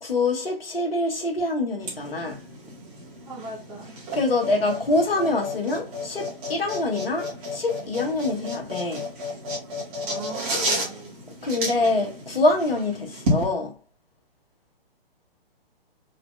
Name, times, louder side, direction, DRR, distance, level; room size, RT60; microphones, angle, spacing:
voice 1, 0.0-2.4 4.1-9.1 11.4-13.7, left 2 dB, 70° left, 1.3 m, -25 dB
sound 1, 1.8-13.4, equal, 35° right, 2.4 m, -32 dB
voice 2, 3.2-4.0 10.0-11.2, right 3 dB, 15° right, 1.7 m, -38 dB
4.0 x 4.0 x 2.2 m
figure-of-eight pair, 120°, 30 cm